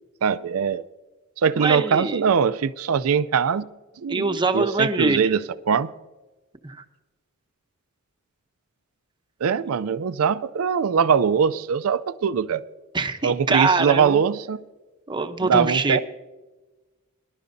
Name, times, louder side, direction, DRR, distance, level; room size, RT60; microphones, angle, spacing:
voice 1, 0.2-0.8 1.4-3.6 4.0-5.9 9.4-12.6 13.2-14.6 15.4-16.0, right 6 dB, 75° right, 0.4 m, -22 dB
voice 2, 1.6-2.2 4.1-5.2 6.6-6.8 12.9-14.2 15.1-16.0, right 3 dB, 20° right, 0.8 m, -23 dB
21.5 x 11.5 x 2.7 m
head